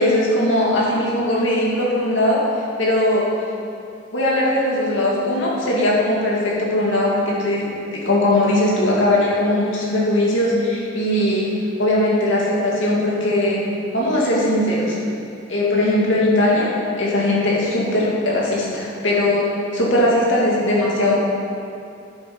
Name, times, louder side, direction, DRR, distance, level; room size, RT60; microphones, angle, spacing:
voice 1, 0.0-3.3 4.1-11.5 11.8-13.6 13.9-15.0 15.5-19.5 19.7-21.2, left 1 dB, 75° left, -5 dB, 2.4 m, -19 dB
9.8 x 7.7 x 5.6 m, 2.6 s
head